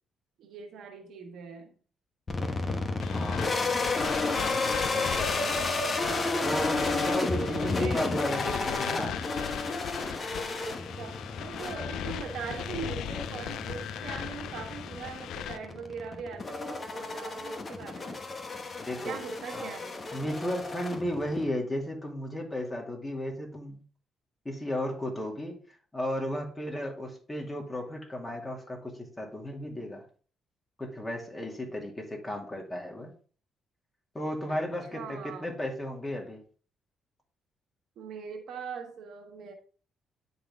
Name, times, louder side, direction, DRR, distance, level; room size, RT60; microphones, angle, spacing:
voice 1, 0.4-1.7 7.3-8.1 10.6-18.2 19.0-20.0 34.5-34.6 34.9-35.6 38.0-39.5, right 6 dB, 75° right, 1.4 m, -41 dB
sound 1, 2.3-21.5, left 3 dB, 35° left, 1.2 m, -32 dB
sound 2, 3.0-15.6, left 11 dB, 80° left, 0.3 m, -38 dB
voice 2, 3.1-3.7 4.2-5.5 6.4-9.2 18.8-19.2 19.5-19.7 20.1-23.8 24.4-25.6 25.9-30.0 30.8-33.1 34.1-36.4, left 1 dB, 15° left, 2.3 m, -34 dB
10.0 x 4.0 x 3.5 m
cardioid pair, 90°, 0 cm